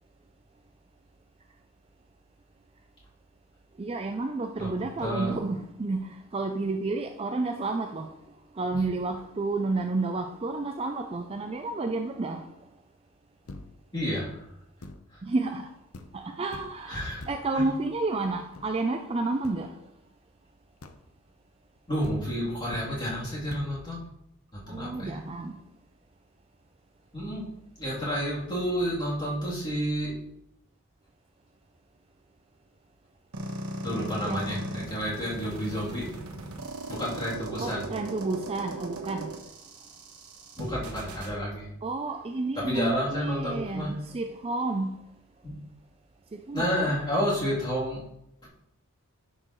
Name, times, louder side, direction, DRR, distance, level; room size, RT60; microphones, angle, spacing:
voice 1, 3.8-8.1 8.6-12.5 15.2-15.7 16.1-19.7 24.7-25.6 34.2-34.6 37.6-39.3 41.8-44.9 46.3-47.0, right 3 dB, 25° right, 0.4 m, -31 dB
voice 2, 5.0-5.3 13.9-14.3 16.9-17.2 21.9-24.0 24.5-25.2 27.1-27.4 27.8-30.1 33.8-36.2 36.9-37.8 40.6-41.7 42.6-43.9 45.4-45.5 46.5-48.0 48.4-48.5, equal, 20° left, 3.0 m, -30 dB
sound 1, 13.5-14.0 14.8-15.2 15.6-15.7 15.9-16.2 16.5-16.9 17.2-17.6 18.2-18.9 19.4-19.7 20.8-21.2 21.8-21.9 22.0-23.0 23.5-23.8, left 2 dB, 70° left, 0.8 m, -44 dB
sound 2, 33.3-41.3, right 1 dB, 80° right, 1.3 m, -38 dB
10.0 x 6.6 x 3.1 m
head